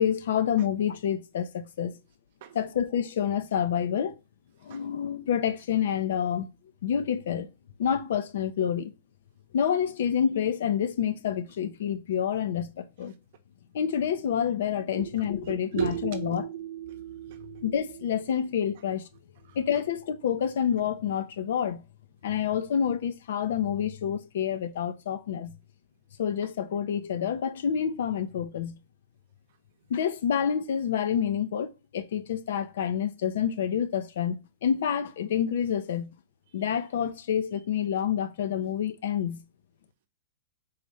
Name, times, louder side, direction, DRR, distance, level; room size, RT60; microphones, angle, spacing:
voice 1, 0.0-2.0 2.5-4.2 4.6-6.5 6.8-7.5 7.8-8.9 9.5-13.1 13.7-16.5 17.6-19.1 19.6-21.8 22.2-25.5 26.2-28.8 29.9-36.1 36.5-39.4, left 8 dB, 70° left, 0.5 m, -28 dB
voice 2, 15.4-17.8, right 10 dB, 60° right, 0.7 m, -34 dB
4.0 x 2.6 x 3.2 m
hypercardioid pair, 130°, 0 cm